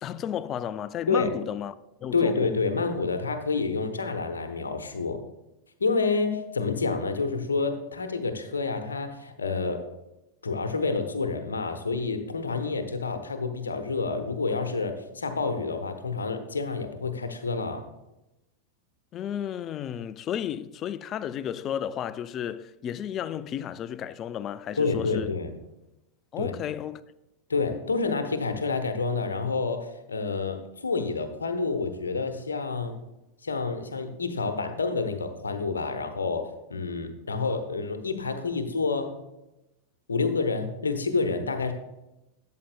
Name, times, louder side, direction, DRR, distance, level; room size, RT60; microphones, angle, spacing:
voice 1, 0.0-1.7 2.0-2.5 19.1-25.4 26.3-27.0, left 9 dB, 30° left, 0.3 m, -33 dB
voice 2, 2.1-5.2 5.8-9.8 10.4-17.8 24.8-25.5 26.4-26.5 27.5-33.0 33.4-39.2 40.1-41.7, left 4 dB, 75° left, 0.9 m, -28 dB
12.5 x 7.5 x 2.2 m
figure-of-eight pair, 90°, 0 cm